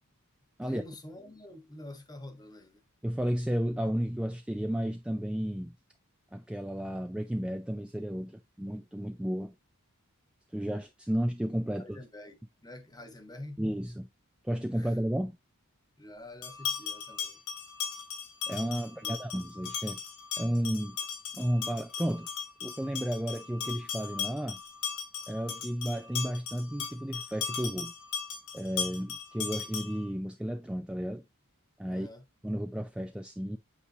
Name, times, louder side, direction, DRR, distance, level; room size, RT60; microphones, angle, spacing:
voice 1, 0.6-2.8 11.7-13.6 14.7-15.0 16.0-17.4 18.8-19.2 31.9-32.2, left 1 dB, 20° left, 1.2 m, -47 dB
voice 2, 3.0-5.8 6.3-9.5 10.5-12.0 13.6-14.1 14.4-15.3 18.5-20.0 20.4-21.0 21.3-22.3 22.6-24.6 25.3-27.9 28.5-31.2 31.8-32.1 32.4-33.6, equal, 5° right, 0.4 m, -32 dB
sound 1, 16.4-30.1, left 7 dB, 80° left, 2.8 m, -37 dB
8.3 x 4.9 x 2.7 m
head